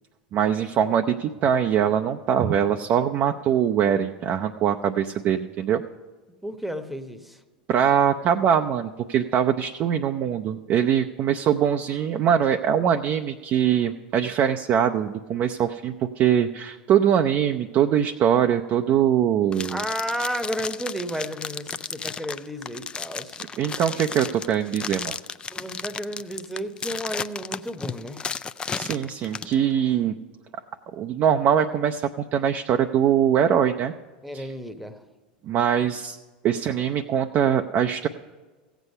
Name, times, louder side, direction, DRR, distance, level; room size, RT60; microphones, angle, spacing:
voice 1, 0.3-5.8 7.7-19.8 23.6-25.2 28.7-30.2 30.9-33.9 34.3-34.5 35.4-36.2 36.4-38.1, right 9 dB, 45° right, 5 dB, 0.5 m, -22 dB
voice 2, 6.4-7.4 19.7-23.4 25.5-28.3 34.2-35.0, equal, ahead, 9 dB, 0.9 m, -32 dB
sound 1, 19.5-29.5, left 5 dB, 20° left, 0.3 m, -34 dB
15.0 x 8.2 x 5.5 m, 1.3 s
hypercardioid pair, 100°, 5 cm